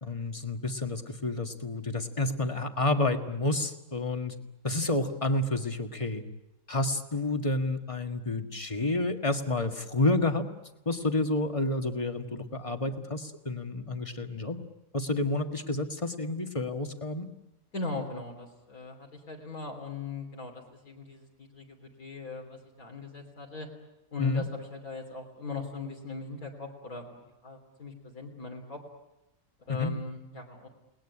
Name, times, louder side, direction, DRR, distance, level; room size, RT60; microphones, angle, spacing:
voice 1, 0.0-4.3 4.6-6.2 6.7-10.4 10.8-14.6 14.9-17.3 24.2-24.4 29.7-29.9, left 2 dB, 20° left, 6 dB, 1.7 m, -29 dB
voice 2, 17.7-23.7 24.1-28.8 29.6-30.7, left 3 dB, 70° left, 0 dB, 3.8 m, -39 dB
29.5 x 19.5 x 9.9 m, 0.99 s
omnidirectional pair, 1.5 m